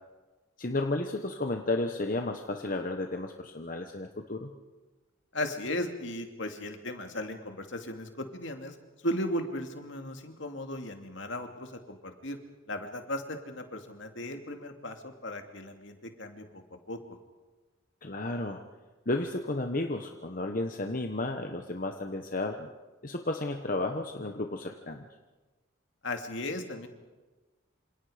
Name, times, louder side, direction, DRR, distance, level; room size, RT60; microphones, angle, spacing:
voice 1, 0.6-4.5 18.0-18.6 19.1-22.7 23.0-25.1, left 2 dB, 40° left, 4 dB, 1.2 m, -32 dB
voice 2, 5.3-8.7 9.0-12.4 12.7-16.6 16.9-17.0 26.0-26.9, left 1 dB, 60° left, 5 dB, 2.6 m, -36 dB
28.0 x 27.0 x 5.1 m, 1.2 s
head